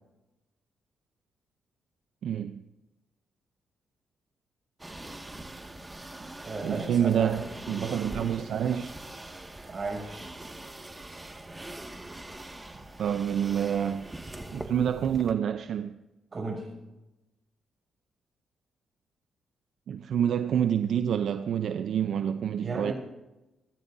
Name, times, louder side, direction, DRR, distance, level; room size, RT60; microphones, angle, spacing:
voice 1, 2.2-2.6 6.6-9.0 13.0-14.1 14.5-16.0 19.9-22.9, right 9 dB, 75° right, 0.7 m, -27 dB
sound 1, 4.8-15.3, right 1 dB, 15° right, 2.0 m, -42 dB
voice 2, 6.4-7.5 9.6-10.3 16.3-16.8 22.6-22.9, right 3 dB, 40° right, 7.2 m, -35 dB
28.5 x 13.5 x 2.8 m
cardioid pair, 70°, 0 cm